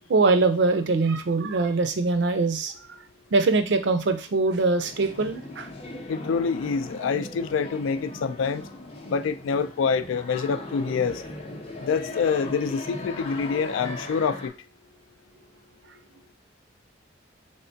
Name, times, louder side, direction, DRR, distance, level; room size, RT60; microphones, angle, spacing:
voice 1, 0.1-2.7 3.3-5.7, right 3 dB, 60° right, 0.5 m, -22 dB
sound 1, 4.8-14.5, left 2 dB, 30° left, 0.6 m, -38 dB
voice 2, 6.1-8.6 9.1-11.2 11.8-14.5, left 5 dB, 80° left, 0.3 m, -26 dB
3.6 x 3.3 x 2.7 m
head